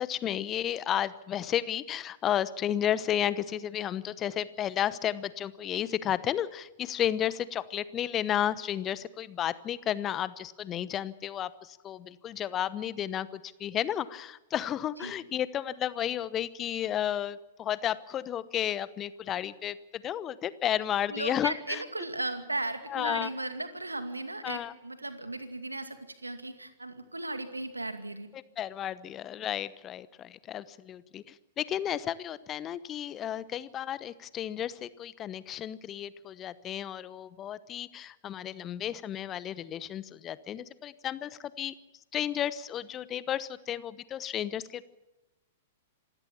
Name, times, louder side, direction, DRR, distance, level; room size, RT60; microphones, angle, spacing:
voice 1, 0.0-21.8 22.9-23.3 24.4-24.7 28.3-41.7 42.1-44.8, left 10 dB, 25° left, 17 dB, 1.0 m, -32 dB
voice 2, 21.1-28.3, right 2 dB, 85° right, 9 dB, 2.3 m, -36 dB
27.0 x 16.5 x 7.2 m, 1.0 s
figure-of-eight pair, 105°, 0 cm